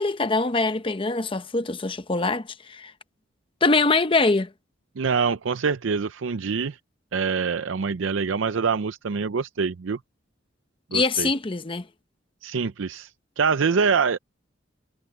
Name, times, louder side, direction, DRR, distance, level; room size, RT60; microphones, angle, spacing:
voice 1, 0.0-2.9 3.6-4.5 10.9-11.9, left 3 dB, 25° left, 0.8 m, -23 dB
voice 2, 5.0-6.8 7.1-10.0 10.9-11.3 12.4-13.1 13.4-14.2, right 5 dB, 85° right, 0.5 m, -25 dB
head